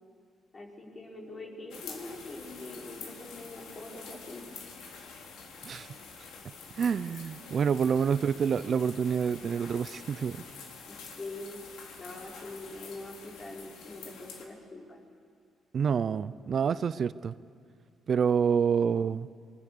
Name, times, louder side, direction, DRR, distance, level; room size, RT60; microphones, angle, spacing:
voice 1, 0.5-4.4 4.8-4.9 10.9-11.6 12.0-15.2, left 2 dB, 35° left, 0 dB, 4.9 m, -44 dB
sound 1, 1.7-14.5, left 5 dB, 85° left, 3.4 m, -47 dB
voice 2, 5.6-5.9 6.8-10.4 15.7-17.3 18.1-19.3, right 7 dB, 55° right, 15 dB, 0.6 m, -27 dB
26.0 x 21.5 x 6.8 m, 2.2 s
cardioid pair, 90°, 0 cm